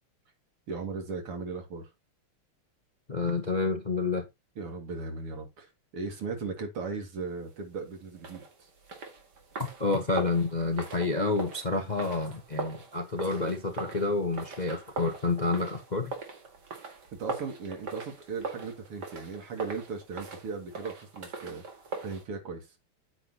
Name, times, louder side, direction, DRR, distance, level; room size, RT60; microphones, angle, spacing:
voice 1, 0.7-1.8 4.6-8.7 17.2-21.6 22.0-22.7, right 4 dB, 90° right, 3.2 m, -37 dB
voice 2, 3.1-4.2 9.8-16.1, left 3 dB, 35° left, 0.7 m, -29 dB
sound 1, 8.2-22.2, right 3 dB, 50° right, 2.4 m, -41 dB
8.9 x 8.0 x 2.9 m
omnidirectional pair, 2.4 m